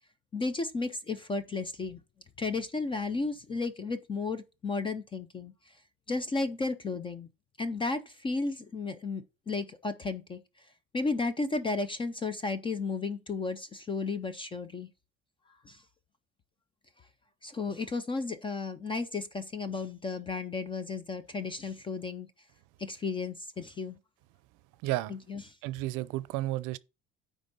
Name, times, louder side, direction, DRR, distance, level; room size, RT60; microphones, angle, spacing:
voice 1, 0.3-2.0 2.4-5.5 6.1-7.3 7.6-10.4 10.9-14.9 15.7-15.8 17.4-22.3 22.8-24.0 25.1-25.4, left 3 dB, 15° left, 0.3 m, -33 dB
voice 2, 24.8-25.1 25.6-26.8, right 17 dB, 65° right, 0.6 m, -32 dB
9.6 x 3.5 x 5.2 m
cardioid pair, 170°, 34 cm